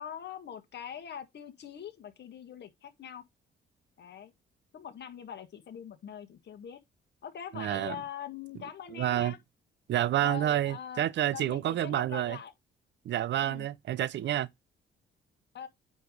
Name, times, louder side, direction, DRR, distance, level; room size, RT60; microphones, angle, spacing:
voice 1, 0.0-3.3 4.0-4.3 4.7-6.8 7.2-9.4 10.2-12.5 13.4-13.7 15.5-15.7, left 9 dB, 60° left, 1.7 m, -43 dB
voice 2, 7.5-8.0 8.9-9.4 9.9-12.4 13.0-14.5, right 12 dB, 65° right, 0.6 m, -29 dB
9.6 x 3.2 x 5.2 m
cardioid pair, 90°, 20 cm